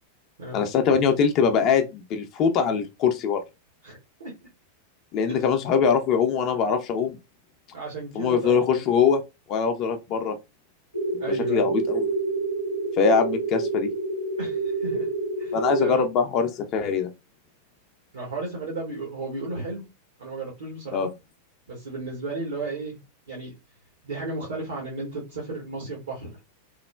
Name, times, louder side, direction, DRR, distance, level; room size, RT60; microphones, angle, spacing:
voice 1, 0.5-3.4 5.1-7.2 8.1-9.2 9.5-10.4 11.5-12.1 13.0-13.9 15.5-17.1 20.9-21.1, left 6 dB, 40° left, 0.4 m, -22 dB
voice 2, 3.8-4.3 5.3-5.5 7.7-8.8 11.2-11.7 14.4-15.1 15.4-16.0 18.1-19.8 20.2-21.1 21.7-23.0 23.3-23.5 24.0-26.3, right 2 dB, 65° right, 1.0 m, -34 dB
sound 1, 10.9-15.9, right 3 dB, 85° right, 0.3 m, -28 dB
3.1 x 2.0 x 2.3 m
figure-of-eight pair, 90°, 0 cm